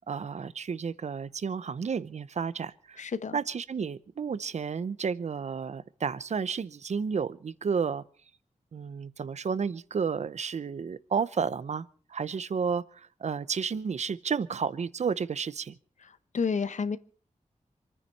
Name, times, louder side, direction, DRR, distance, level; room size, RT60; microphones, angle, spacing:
voice 1, 0.1-3.0 3.3-8.0 8.7-15.7, right 6 dB, 60° right, 0.8 m, -32 dB
voice 2, 3.0-3.4 16.0-17.0, left 5 dB, 70° left, 1.1 m, -31 dB
27.0 x 10.0 x 5.4 m
wide cardioid pair, 135°, 13 cm